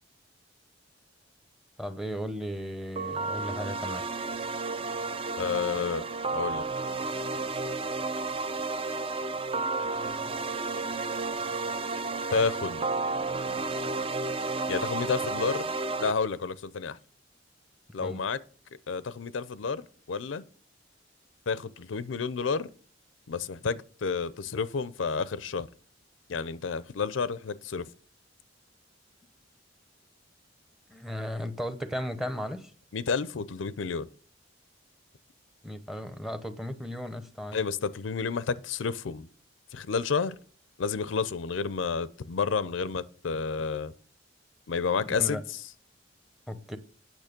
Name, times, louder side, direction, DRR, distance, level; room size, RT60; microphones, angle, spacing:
voice 1, 1.8-4.0 18.0-18.2 30.9-32.7 35.6-37.6 45.2-45.4 46.5-46.8, equal, ahead, 0.8 m, -35 dB
sound 1, 3.0-16.1, right 3 dB, 30° right, 0.5 m, -32 dB
voice 2, 5.3-6.0 6.3-6.6 12.3-12.8 14.7-15.7 16.0-17.0 17.9-18.4 18.9-20.4 21.5-22.7 23.3-25.7 26.3-27.9 32.9-34.1 37.5-39.3 39.7-40.4 40.8-43.9 44.7-45.4, left 5 dB, 85° left, 0.5 m, -30 dB
9.0 x 6.3 x 5.2 m
head